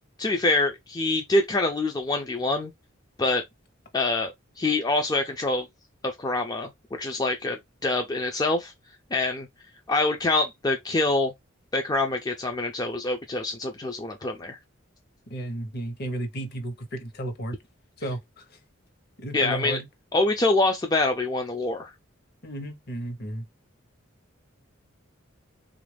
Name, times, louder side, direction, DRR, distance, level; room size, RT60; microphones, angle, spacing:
voice 1, 0.2-2.7 3.2-3.4 3.9-5.7 6.2-6.7 7.0-8.7 9.1-9.5 9.9-11.3 11.7-14.6 19.3-19.8 20.1-21.9, left 2 dB, 20° left, 0.4 m, -25 dB
voice 2, 15.3-17.6 18.0-18.6 19.2-19.9 22.4-23.4, right 1 dB, 50° left, 0.9 m, -33 dB
3.4 x 2.5 x 3.3 m
head